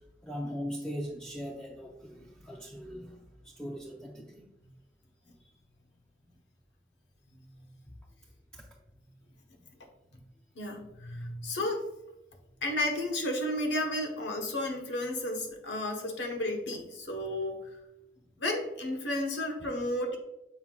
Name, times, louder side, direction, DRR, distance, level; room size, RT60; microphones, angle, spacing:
voice 1, 0.2-3.2 3.4-4.4 8.5-8.7, equal, 5° left, -3 dB, 0.5 m, -39 dB
voice 2, 10.6-11.8 12.6-17.6 18.4-20.2, left 1 dB, 80° left, 3 dB, 1.2 m, -32 dB
7.0 x 5.6 x 2.4 m, 0.93 s
head